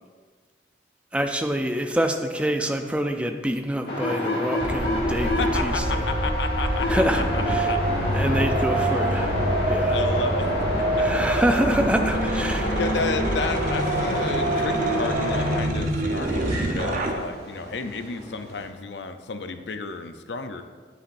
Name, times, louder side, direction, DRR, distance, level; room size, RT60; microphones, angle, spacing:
voice 1, 1.1-6.0 6.9-7.2 7.5-7.7 8.1-9.3 9.6-10.0 11.0-12.8, equal, 5° right, 5 dB, 0.5 m, -26 dB
sound 1, 3.9-15.6, left 1 dB, 65° left, 1.7 m, -28 dB
sound 2, 4.6-17.1, right 1 dB, 50° right, 0.8 m, -26 dB
voice 2, 5.1-7.8 8.7-9.1 9.9-10.5 10.8-11.1 11.3-11.4 12.7-20.6, left 4 dB, 80° left, 8 dB, 0.6 m, -32 dB
sound 3, 13.4-18.7, equal, 30° right, 2.3 m, -38 dB
10.0 x 8.4 x 2.6 m, 1.5 s
head